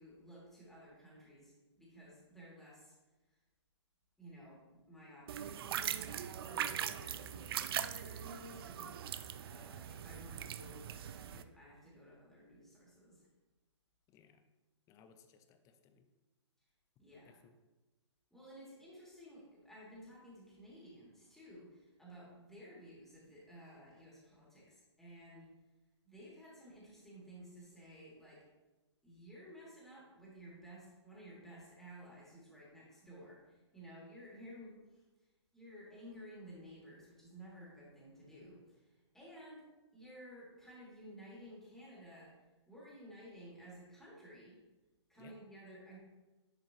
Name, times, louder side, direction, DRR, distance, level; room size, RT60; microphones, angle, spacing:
voice 1, 0.0-2.9 4.2-8.9 9.4-13.2 17.0-17.4 18.3-25.5 26.0-28.4 29.0-34.8 35.5-38.9 39.1-39.6 39.9-42.3 42.7-44.6 45.1-46.0, equal, ahead, -7 dB, 2.7 m, -54 dB
sound 1, 5.3-11.4, right 9 dB, 50° right, 0.4 m, -41 dB
voice 2, 14.1-14.4 14.9-16.1 17.3-17.5 45.2-45.4, left 6 dB, 20° left, 8 dB, 0.6 m, -63 dB
10.5 x 5.0 x 3.1 m, 1.1 s
hypercardioid pair, 135°, 16 cm